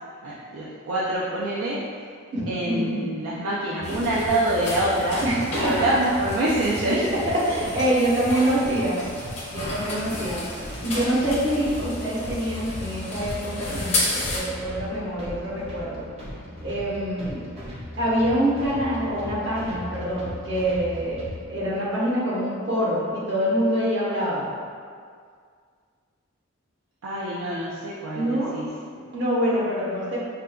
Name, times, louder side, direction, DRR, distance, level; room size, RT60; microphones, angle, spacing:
voice 1, 0.2-2.1 2.5-7.0 27.0-28.7, right 1 dB, 75° right, -7 dB, 0.4 m, -26 dB
voice 2, 2.3-3.1 5.2-5.7 7.0-9.0 9.5-10.4 10.8-16.1 16.6-17.4 18.0-24.5 28.1-28.5 28.9-30.2, equal, 55° right, -8 dB, 0.9 m, -25 dB
sound 1, 3.8-14.4, left 2 dB, 30° left, 0.5 m, -33 dB
sound 2, 3.8-21.4, left 1 dB, 30° right, 0.6 m, -38 dB
4.9 x 2.2 x 2.2 m, 2.1 s
head